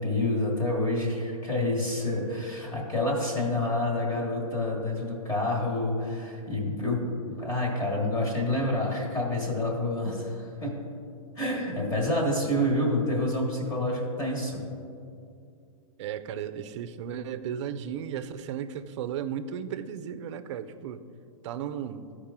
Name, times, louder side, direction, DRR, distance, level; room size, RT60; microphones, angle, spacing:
voice 1, 0.0-7.0 7.4-10.8 11.4-14.6, left 1 dB, 20° left, -1 dB, 1.5 m, -28 dB
voice 2, 16.0-21.0 21.4-22.1, right 8 dB, 55° right, 12 dB, 0.5 m, -35 dB
13.0 x 4.8 x 3.6 m, 2.5 s
hypercardioid pair, 145°, 18 cm